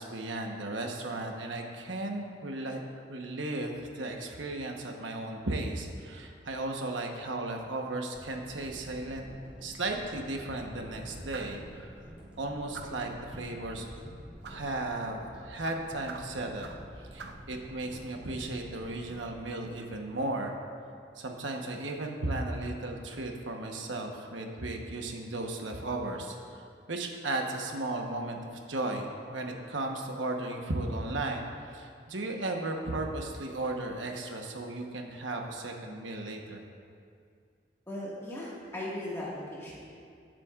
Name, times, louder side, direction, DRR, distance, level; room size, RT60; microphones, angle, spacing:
voice 1, 0.0-2.8 3.1-9.3 9.6-11.9 12.4-14.0 14.4-16.7 17.1-20.5 21.2-28.4 28.7-36.7, right 2 dB, 90° right, 2 dB, 1.1 m, -35 dB
sound 1, 8.1-20.4 20.9-21.0, equal, 5° right, 2.3 m, -48 dB
sound 2, 11.3-11.6 12.7-13.1 14.4-14.7 15.6-16.9 17.2-17.5, right 5 dB, 65° right, 0.5 m, -45 dB
voice 2, 37.9-39.8, left 1 dB, 15° left, -6 dB, 1.8 m, -38 dB
20.0 x 7.5 x 2.5 m, 2.3 s
head